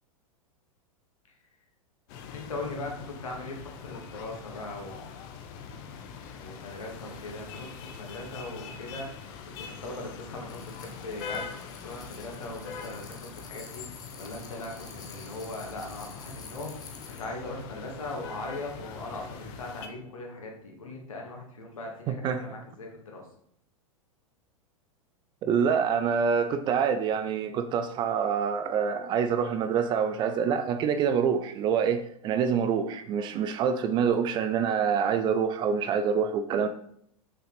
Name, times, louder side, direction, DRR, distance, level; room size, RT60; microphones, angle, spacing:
sound 1, 2.1-19.9, left 6 dB, 40° left, 0.9 m, -43 dB
voice 1, 2.3-5.0 6.4-9.3 9.6-11.5 11.8-23.3, left 2 dB, 65° left, 2.0 m, -40 dB
sound 2, 10.5-17.3, left 5 dB, 20° left, 1.2 m, -50 dB
voice 2, 22.1-22.4 25.4-36.7, right 7 dB, 25° right, 0.5 m, -26 dB
6.1 x 5.7 x 4.1 m
figure-of-eight pair, 95°, 18 cm